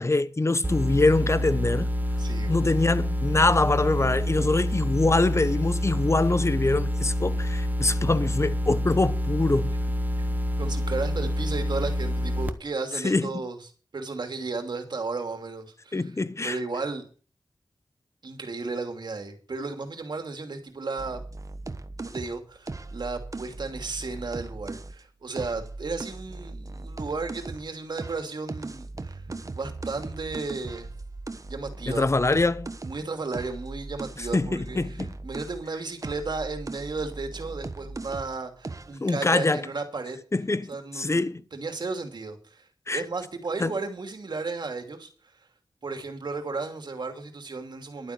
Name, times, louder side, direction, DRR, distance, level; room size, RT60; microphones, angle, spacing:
voice 1, 0.0-1.9 2.5-9.7 13.0-13.4 15.9-16.6 31.9-32.7 34.2-35.2 39.0-39.6 40.3-41.4 42.9-43.0 43.6-43.8, left 2 dB, 40° left, 1.0 m, -24 dB
sound 1, 0.6-12.5, equal, 25° right, 1.5 m, -27 dB
voice 2, 2.2-2.5 4.4-4.5 10.6-13.6 13.9-16.0 16.4-17.1 18.2-21.2 22.0-29.2 29.5-30.9 31.4-32.1 32.8-34.8 35.2-40.2 40.7-42.7 42.9-45.1 45.8-48.1, right 3 dB, 75° right, 2.8 m, -34 dB
sound 2, 21.0-25.0 25.3-27.7 28.0-35.7 36.0-38.4 38.6-39.0, right 2 dB, 50° right, 1.3 m, -38 dB
12.0 x 9.2 x 6.6 m
wide cardioid pair, 60°, 7 cm